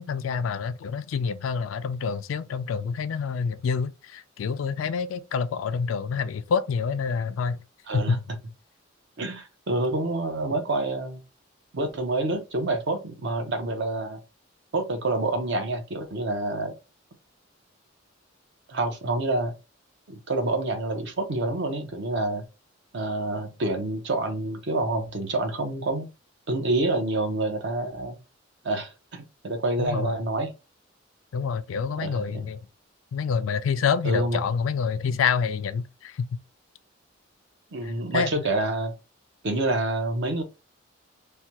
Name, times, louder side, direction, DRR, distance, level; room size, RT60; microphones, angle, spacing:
voice 1, 0.0-7.6 7.9-8.2 29.8-30.2 31.3-32.6 33.1-36.3 37.8-38.3, left 6 dB, 85° left, 0.3 m, -27 dB
voice 2, 7.9-8.2 9.2-11.2 11.7-14.2 14.7-16.7 18.7-19.5 20.1-22.4 22.9-26.1 26.5-28.2 28.6-30.5 32.0-32.5 34.0-34.5 37.7-38.9 39.4-40.4, right 2 dB, 65° right, 0.7 m, -27 dB
3.3 x 2.2 x 2.8 m
head